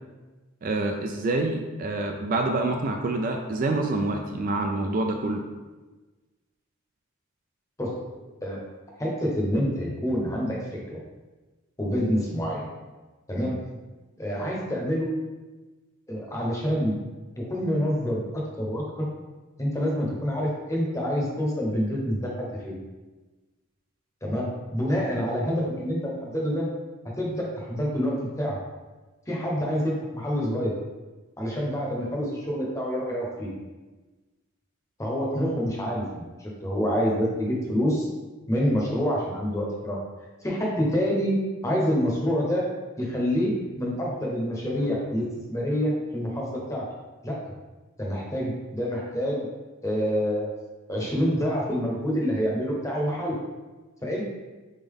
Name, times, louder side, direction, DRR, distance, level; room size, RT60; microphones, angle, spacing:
voice 1, 0.6-5.4, right 2 dB, 40° right, 3 dB, 0.3 m, -27 dB
voice 2, 9.0-11.0 11.8-12.7 13.3-13.6 14.2-15.1 16.1-17.0 17.4-19.1 19.6-22.7 24.2-26.7 27.2-28.6 29.3-30.7 31.4-33.5 35.0-38.1 38.5-40.0 40.4-42.7 43.0-46.9 47.2-47.4 48.0-49.5 49.8-50.5 50.9-53.4 54.0-54.2, equal, 15° left, -3 dB, 0.8 m, -27 dB
3.9 x 3.7 x 3.5 m, 1.2 s
head